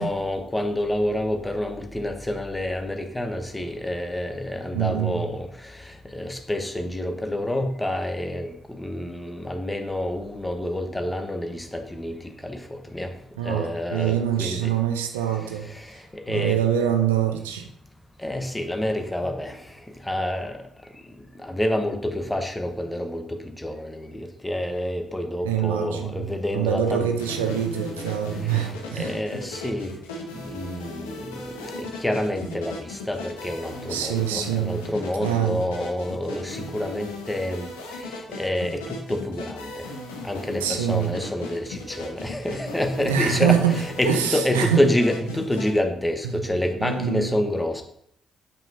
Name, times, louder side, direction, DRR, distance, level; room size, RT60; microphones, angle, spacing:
voice 1, 0.0-13.1 13.4-14.7 15.4-16.6 18.2-20.6 21.3-27.1 27.4-27.5 28.4-29.9 30.3-37.7 38.0-39.9 40.2-47.8, left 1 dB, 10° left, 5 dB, 1.1 m, -28 dB
voice 2, 4.7-5.3 13.4-15.7 16.3-17.7 25.4-26.3 26.5-29.1 33.9-34.8 35.2-35.6 40.6-41.1 43.1-43.7 44.1-44.8 46.3-46.5 46.8-47.3, right 9 dB, 75° right, 5 dB, 0.6 m, -24 dB
sound 1, 27.2-45.8, left 2 dB, 75° left, 0.9 m, -37 dB
7.3 x 5.7 x 2.7 m, 0.68 s
figure-of-eight pair, 40°, 0 cm